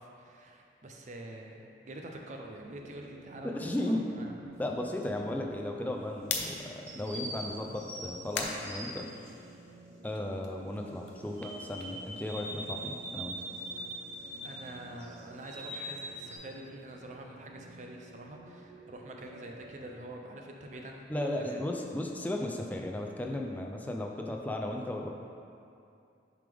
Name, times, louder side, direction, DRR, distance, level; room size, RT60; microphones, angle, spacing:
voice 1, 0.0-3.7 4.2-4.3 14.4-21.6, right 1 dB, 45° right, 1 dB, 0.5 m, -45 dB
sound 1, 2.4-20.1, right 1 dB, 85° right, 0.8 m, -53 dB
voice 2, 3.4-4.1 4.6-9.1 10.0-13.4 21.1-25.1, left 1 dB, 10° left, 1 dB, 0.4 m, -35 dB
sound 2, 4.4-5.4 6.9-9.3 11.4-14.6 15.0-16.4, right 1 dB, 15° right, 1.0 m, -42 dB
sound 3, 6.1-9.6 10.0-13.0 13.2-17.4, left 5 dB, 75° left, 0.6 m, -43 dB
7.0 x 5.0 x 3.5 m, 2.6 s
head